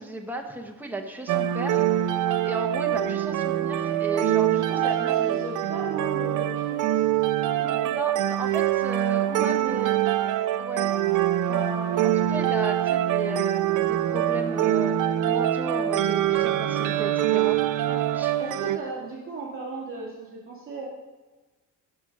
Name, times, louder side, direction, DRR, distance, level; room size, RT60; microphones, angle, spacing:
voice 1, 0.0-2.1 2.4-5.5 7.9-10.1 10.6-11.0 11.5-17.6 18.1-18.3, right 1 dB, 5° right, 2 dB, 1.0 m, -35 dB
sound 1, 1.3-18.8, right 12 dB, 60° right, 0.5 m, -24 dB
voice 2, 2.8-3.1 4.4-8.3 9.1-9.8 17.8-20.9, right 3 dB, 35° right, -6 dB, 2.4 m, -38 dB
12.5 x 6.3 x 5.3 m, 1.2 s
cardioid pair, 170°, 36 cm